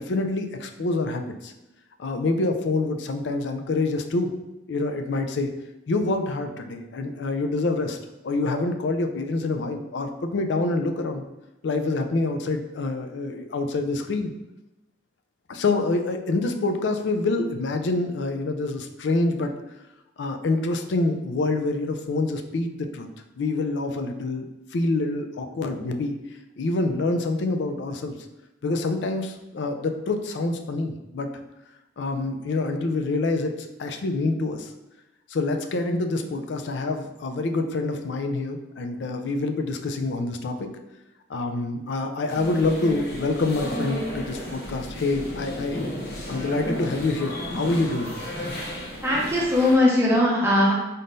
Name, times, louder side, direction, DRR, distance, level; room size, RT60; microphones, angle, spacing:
voice 1, 0.0-1.5 2.0-4.3 4.7-5.5 5.9-8.0 8.2-11.2 11.6-14.3 15.5-19.5 20.2-23.1 23.4-26.1 26.6-28.1 28.6-31.3 32.0-33.5 33.8-34.7 35.3-40.7 41.3-45.8 46.3-48.1, left 2 dB, 75° left, 6 dB, 0.4 m, -26 dB
sound 1, 42.3-49.8, equal, 60° left, 0.8 m, -33 dB
voice 2, 49.0-50.7, left 1 dB, 15° right, -4 dB, 0.6 m, -19 dB
4.0 x 3.6 x 2.6 m, 0.96 s
head